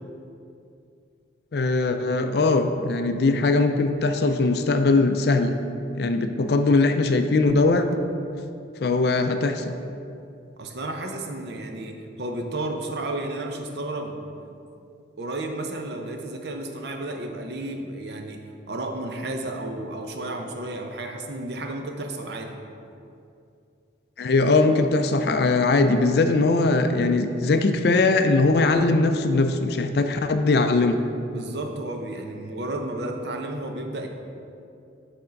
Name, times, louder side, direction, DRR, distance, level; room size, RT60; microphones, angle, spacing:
voice 1, 1.5-5.6 6.0-8.0 8.8-9.7 24.2-31.0, left 3 dB, 60° left, 8 dB, 0.4 m, -21 dB
voice 2, 10.6-14.2 15.2-22.5 31.3-34.1, right 2 dB, 65° right, 4 dB, 0.6 m, -32 dB
7.0 x 3.6 x 5.1 m, 2.6 s
head